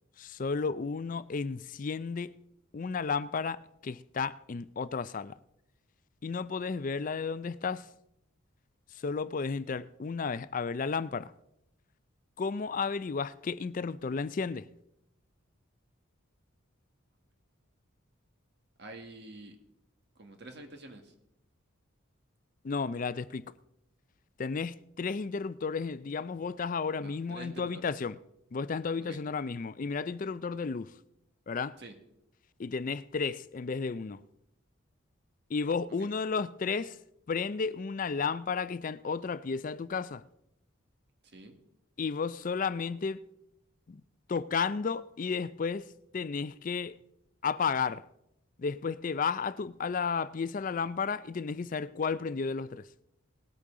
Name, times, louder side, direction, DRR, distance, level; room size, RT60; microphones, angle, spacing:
voice 1, 0.2-2.3 2.7-5.4 6.2-7.9 8.9-11.3 12.4-14.6 22.6-23.5 24.4-28.2 28.5-30.9 31.5-31.8 32.6-34.2 35.5-37.0 37.3-40.2 42.0-43.2 43.9-44.0 44.3-45.9 46.1-47.0 47.4-48.0 48.6-52.9, left 5 dB, 40° left, 0.4 m, -33 dB
voice 2, 18.8-19.6 20.2-21.1 27.0-27.9 29.0-29.2 31.8-31.9 36.0-36.1 41.2-41.6, right 2 dB, 50° right, 1.7 m, -47 dB
19.0 x 8.5 x 3.8 m
head